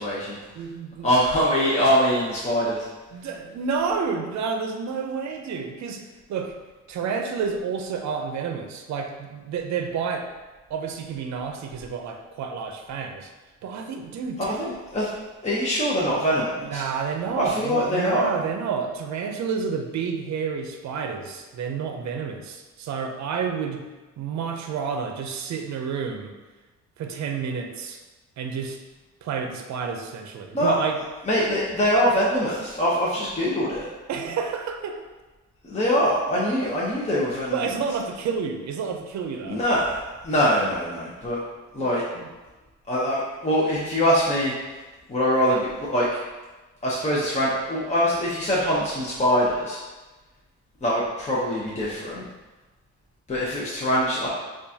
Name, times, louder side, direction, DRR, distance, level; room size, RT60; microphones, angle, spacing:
voice 1, 0.0-0.4 1.0-2.9 14.4-15.1 15.4-16.8 17.4-18.3 30.5-30.8 31.2-33.9 35.6-37.6 39.5-41.4 41.7-42.0 42.9-44.5 45.1-46.2 46.8-49.8 50.8-52.3 53.3-54.3, equal, 20° left, -6 dB, 0.9 m, -23 dB
voice 2, 0.6-1.1 3.1-6.0 6.3-6.5 6.9-10.3 10.7-13.3 13.6-14.7 16.6-23.8 24.2-26.3 27.0-28.0 28.4-28.8 29.2-31.0 34.1-35.0 36.6-36.7 37.5-39.6 41.8-42.3, right 6 dB, 65° right, 4 dB, 0.6 m, -30 dB
6.7 x 2.5 x 2.8 m, 1.2 s
cardioid pair, 90°, 30 cm